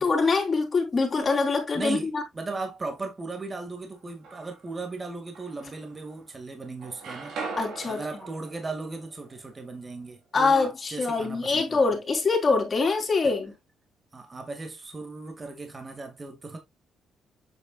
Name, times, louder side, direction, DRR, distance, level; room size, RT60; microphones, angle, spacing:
voice 1, 0.0-2.2 7.6-8.0 10.3-13.5, left 4 dB, 35° left, 3.3 m, -24 dB
voice 2, 1.8-7.4 7.9-11.8 13.2-13.3 14.1-16.6, right 3 dB, 30° right, 2.0 m, -37 dB
sound 1, 3.9-4.8 5.3-6.4 6.6-10.6, right 4 dB, 80° right, 2.9 m, -41 dB
8.0 x 6.5 x 2.3 m
cardioid pair, 90°, 0 cm